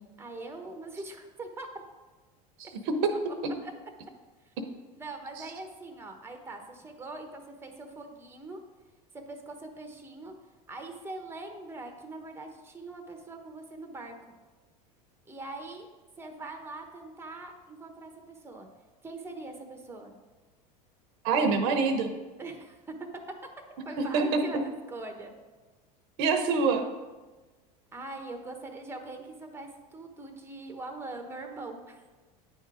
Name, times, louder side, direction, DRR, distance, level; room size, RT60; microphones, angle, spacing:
voice 1, 0.2-1.8 3.1-3.2 3.6-3.7 5.0-8.6 9.1-10.3 10.7-14.3 15.3-15.9 16.2-18.7 19.0-20.1 22.4-23.2 23.8-25.3 27.9-32.0, right 2 dB, 10° right, 4 dB, 1.0 m, -42 dB
voice 2, 2.6-3.1 21.2-22.1 24.1-24.4 26.2-26.9, right 4 dB, 65° right, 6 dB, 0.8 m, -25 dB
9.2 x 3.7 x 4.9 m, 1.2 s
hypercardioid pair, 100°, 20 cm